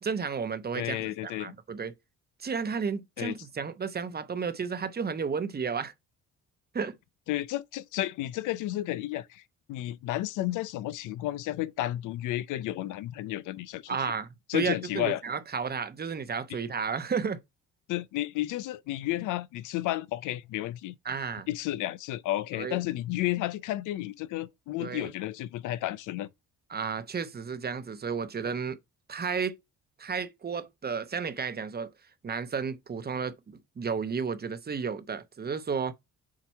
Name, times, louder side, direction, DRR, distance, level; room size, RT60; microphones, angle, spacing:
voice 1, 0.0-1.9 2.4-5.9 6.7-6.9 13.9-17.4 21.0-21.5 22.5-22.8 24.8-25.1 26.7-28.8 29.1-29.5 30.0-31.9 32.2-35.9, right 6 dB, 30° right, 0.9 m, -32 dB
voice 2, 0.7-1.5 3.2-3.3 7.3-9.4 9.7-14.1 14.5-15.2 17.9-21.0 21.5-26.3, left 15 dB, 90° left, 0.6 m, -32 dB
7.4 x 2.9 x 4.5 m
cardioid pair, 90°, 30 cm